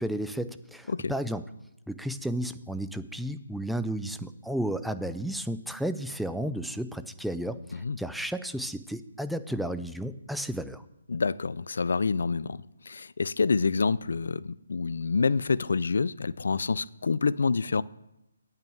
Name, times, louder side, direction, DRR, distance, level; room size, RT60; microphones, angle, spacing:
voice 1, 0.0-1.4 1.9-10.8, right 1 dB, ahead, 0.4 m, -33 dB
voice 2, 11.1-17.8, left 4 dB, 70° left, 0.4 m, -27 dB
8.9 x 5.6 x 7.8 m
figure-of-eight pair, 150°, 0 cm